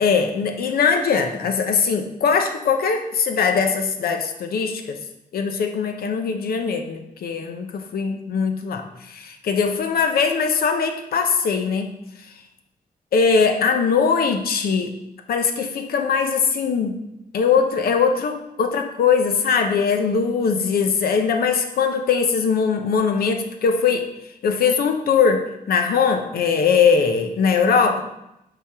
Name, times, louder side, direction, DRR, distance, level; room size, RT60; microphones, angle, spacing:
voice 1, 0.0-5.0 5.3-11.9 13.1-14.9 15.3-17.0 17.3-24.1 24.4-28.0, left 5 dB, 85° left, 6 dB, 0.7 m, -21 dB
8.4 x 3.5 x 3.5 m, 0.86 s
cardioid pair, 90°, 15 cm